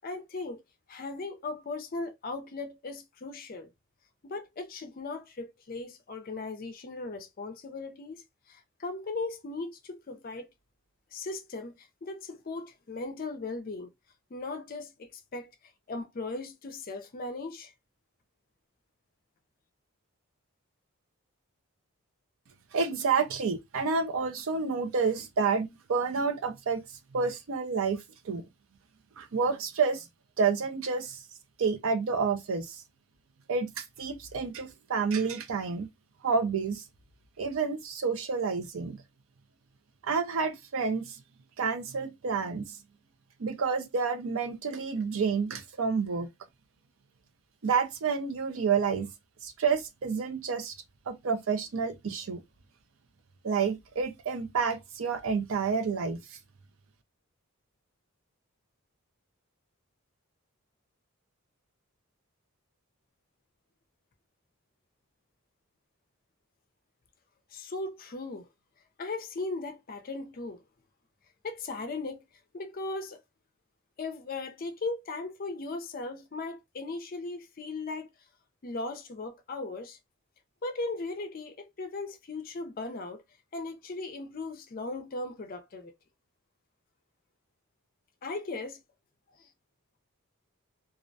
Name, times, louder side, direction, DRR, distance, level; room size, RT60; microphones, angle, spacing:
voice 1, 0.0-0.6 0.9-3.7 4.2-10.5 11.1-13.9 14.3-15.5 15.9-17.7 67.5-68.5 69.0-70.6 71.4-72.2 72.5-73.2 74.0-78.1 78.6-80.0 80.6-83.2 83.5-85.9 88.2-88.8 89.4-89.5, left 3 dB, 40° left, 0.4 m, -38 dB
voice 2, 22.7-26.8 27.1-28.4 29.2-30.0 30.4-31.2 31.6-32.8 33.5-35.9 36.2-36.8 37.4-39.0 40.1-41.2 41.6-42.7 43.4-46.3 47.6-49.1 49.4-50.7 51.1-52.4 53.4-56.2, right 5 dB, 65° right, 0.4 m, -29 dB
2.4 x 2.1 x 2.5 m
head